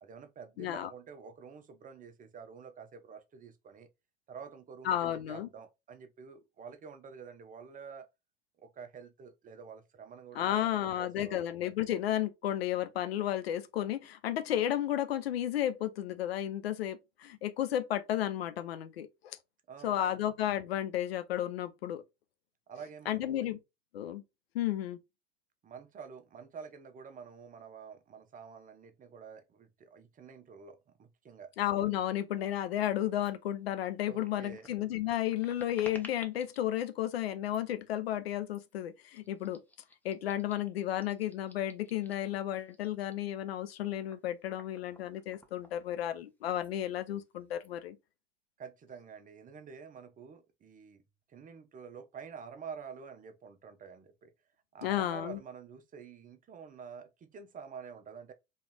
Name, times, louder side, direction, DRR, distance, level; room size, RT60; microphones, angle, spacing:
voice 1, 0.0-3.9 4.3-8.1 8.6-11.5 19.7-20.1 22.7-23.5 25.6-31.5 34.0-34.7 48.6-51.0 51.3-54.3 54.7-58.3, right 6 dB, 25° right, 0.7 m, -48 dB
voice 2, 0.6-0.9 4.8-5.5 10.3-19.4 19.8-22.0 23.1-23.6 23.9-24.2 24.5-25.0 31.6-39.6 40.0-48.0 54.8-55.4, left 12 dB, 75° left, 0.6 m, -33 dB
sound 1, 33.2-33.3 33.7-36.6 37.4-37.8 38.5-38.7 39.1-42.3 42.6-46.3 46.6-46.7 47.0-47.7, left 1 dB, 5° left, 0.9 m, -55 dB
4.3 x 3.2 x 2.3 m
figure-of-eight pair, 80°, 31 cm